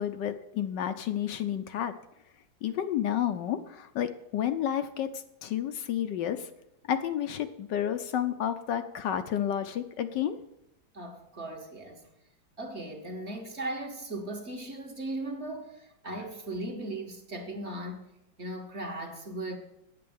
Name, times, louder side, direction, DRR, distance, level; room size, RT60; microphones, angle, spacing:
voice 1, 0.0-1.9 2.6-5.1 5.4-6.5 6.9-10.4, left 10 dB, 75° left, 1.2 m, -30 dB
voice 2, 10.9-12.0 12.6-18.0 18.4-19.6, right 1 dB, 40° right, 1.5 m, -37 dB
8.7 x 8.4 x 7.0 m
omnidirectional pair, 2.1 m